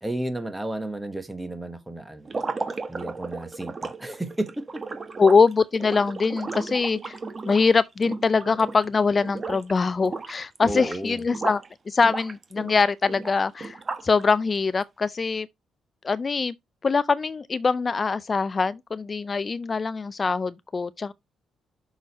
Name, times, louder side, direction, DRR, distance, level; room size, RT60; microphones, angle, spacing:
voice 1, 0.0-2.3 2.9-5.0 10.6-11.2, right 1 dB, 10° right, 1.2 m, -32 dB
sound 1, 2.2-8.9 9.2-9.7 10.0-11.7 12.0-14.2, right 4 dB, 30° right, 1.1 m, -34 dB
voice 2, 5.2-7.2 7.5-11.6 11.9-15.5 16.0-16.5 16.8-21.1, left 4 dB, 30° left, 0.4 m, -23 dB
6.3 x 6.2 x 4.1 m
cardioid pair, 110°, 0 cm